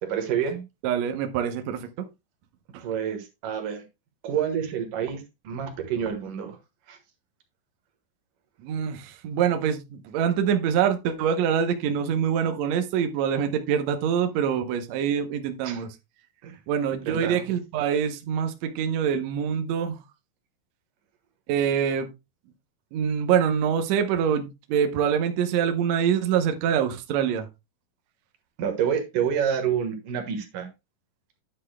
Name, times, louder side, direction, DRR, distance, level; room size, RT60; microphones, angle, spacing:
voice 1, 0.0-0.6 2.8-3.8 4.2-6.6 6.9-7.0 15.6-15.8 16.4-16.6 17.1-17.4 28.6-30.7, right 8 dB, 65° right, 2.8 m, -28 dB
voice 2, 0.8-2.1 2.7-2.8 8.6-16.0 16.7-20.0 21.5-22.1 22.9-27.5, right 8 dB, 80° right, 1.5 m, -25 dB
9.8 x 8.4 x 2.2 m
omnidirectional pair, 4.3 m